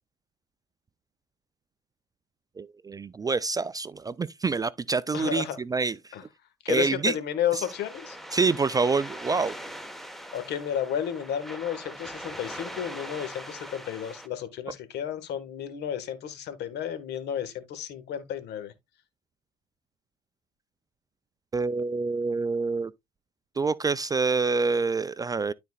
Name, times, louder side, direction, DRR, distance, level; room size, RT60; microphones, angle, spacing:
voice 1, 2.6-6.0 6.7-7.1 8.3-9.5 21.5-22.9 23.6-25.5, right 4 dB, 20° right, 0.4 m, -26 dB
voice 2, 5.1-5.6 6.1-6.2 6.6-8.2 10.3-18.7, left 9 dB, 60° left, 1.5 m, -32 dB
sound 1, 7.6-14.3, equal, ahead, 1.2 m, -41 dB
12.5 x 4.2 x 2.3 m
hypercardioid pair, 65°, 19 cm